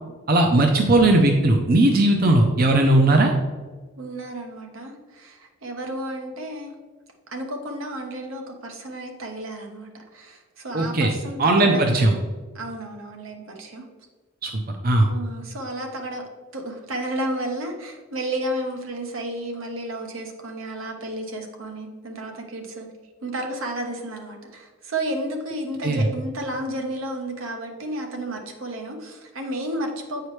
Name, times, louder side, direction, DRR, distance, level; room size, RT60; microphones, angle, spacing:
voice 1, 0.3-3.3 10.7-11.1 11.4-12.1 14.4-14.5 14.8-15.1 25.8-26.0, right 2 dB, 45° right, 3 dB, 0.6 m, -18 dB
voice 2, 4.0-6.7 7.3-12.2 12.5-13.8 15.1-16.2 16.5-22.9 23.2-30.3, right 1 dB, 85° right, 3 dB, 1.1 m, -32 dB
8.4 x 4.7 x 3.2 m, 1.3 s
head